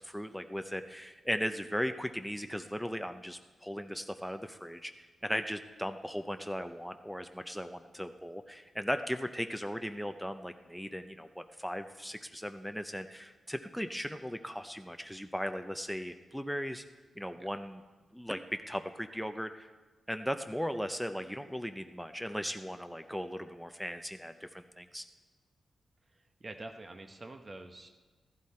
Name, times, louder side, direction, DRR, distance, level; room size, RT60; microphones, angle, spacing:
voice 1, 0.0-4.9 5.2-16.8 17.2-17.8 18.1-19.7 20.1-25.1, equal, ahead, 7 dB, 0.5 m, -37 dB
voice 2, 26.4-27.9, right 2 dB, 25° right, 5 dB, 1.0 m, -46 dB
15.0 x 15.0 x 4.3 m, 1.3 s
wide cardioid pair, 145°, 0 cm